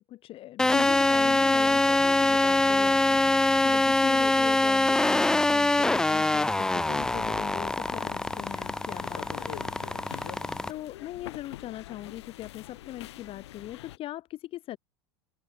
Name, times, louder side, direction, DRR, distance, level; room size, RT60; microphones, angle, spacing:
voice 1, 0.0-9.6 10.7-14.8, left 14 dB, 40° left, 4.2 m, -40 dB
sound 1, 0.6-10.7, left 2 dB, 5° left, 0.3 m, -24 dB
sound 2, 7.0-14.0, left 15 dB, 80° left, 1.3 m, -45 dB
open air
supercardioid pair, 125°, 14 cm